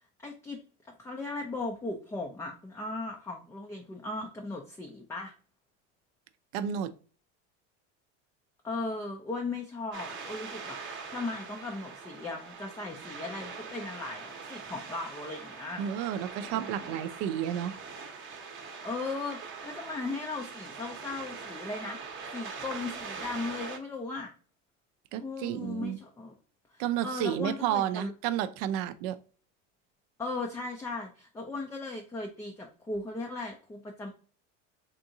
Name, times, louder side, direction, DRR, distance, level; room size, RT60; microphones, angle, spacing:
voice 1, 0.2-0.6 1.0-5.3 8.6-15.8 16.4-17.0 18.8-24.3 25.2-26.3 26.7-28.1 30.2-34.1, left 3 dB, 10° left, 0.3 m, -37 dB
voice 2, 6.5-6.9 15.8-17.7 25.1-26.0 26.8-29.2, right 10 dB, 60° right, 0.5 m, -31 dB
sound 1, 9.9-23.8, right 5 dB, 35° right, 0.8 m, -42 dB
3.7 x 2.6 x 2.7 m
supercardioid pair, 100°, 36 cm